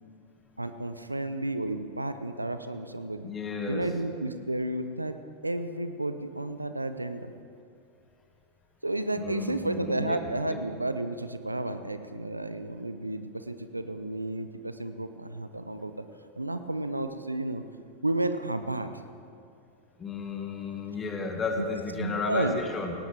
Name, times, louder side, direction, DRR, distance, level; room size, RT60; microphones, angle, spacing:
voice 1, 0.6-3.3 3.7-5.2 5.4-7.3 8.8-16.0 16.4-17.6 18.0-18.9 21.6-22.6, right 1 dB, 85° right, 10 dB, 0.7 m, -32 dB
voice 2, 3.2-3.8 9.2-10.2 10.5-10.6 20.0-22.9, left 4 dB, 20° left, 3 dB, 1.8 m, -33 dB
18.5 x 17.5 x 3.4 m, 2.4 s
figure-of-eight pair, 90°, 0 cm